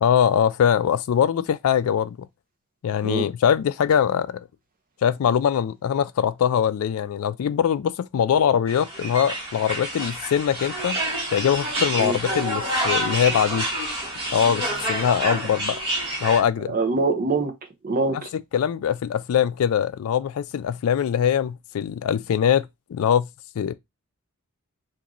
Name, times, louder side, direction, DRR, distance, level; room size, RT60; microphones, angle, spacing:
voice 1, 0.0-2.2 2.8-4.4 5.0-11.0 11.3-13.7 14.3-15.8 16.2-16.7 18.5-23.3 23.6-23.7, left 8 dB, 75° left, 0.3 m, -22 dB
sound 1, 8.7-16.4, right 1 dB, 25° right, 1.4 m, -28 dB
voice 2, 16.7-17.5 17.8-18.3, right 3 dB, 40° right, 0.7 m, -24 dB
3.0 x 2.6 x 3.7 m
head